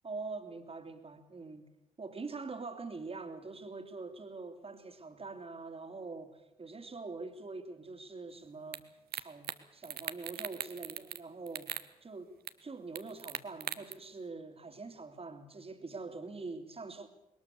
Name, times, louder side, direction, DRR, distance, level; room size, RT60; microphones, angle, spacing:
voice 1, 0.0-1.6 2.0-12.3 12.6-17.1, right 3 dB, 30° right, 7 dB, 2.6 m, -44 dB
sound 1, 8.7-8.8 9.1-9.6 9.8-11.2 11.5-11.9 12.5-12.6 13.0-13.9, right 10 dB, 55° right, 1.0 m, -39 dB
21.0 x 19.5 x 6.8 m, 0.86 s
figure-of-eight pair, 45°, 19 cm